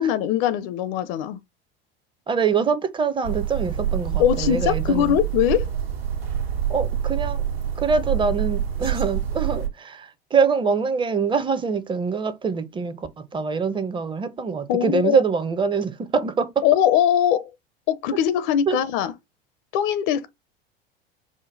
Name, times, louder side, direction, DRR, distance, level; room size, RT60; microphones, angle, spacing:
voice 1, 0.0-1.4 4.2-5.7 14.7-15.2 16.6-17.5 17.9-19.1 19.7-20.3, left 10 dB, 55° left, 0.6 m, -21 dB
voice 2, 2.3-5.1 6.7-7.4 7.8-16.6 18.7-18.8, right 5 dB, 15° right, 0.7 m, -24 dB
sound 1, 3.2-9.7, right 9 dB, 85° right, 1.4 m, -26 dB
5.1 x 2.1 x 3.9 m
hypercardioid pair, 80°, 30 cm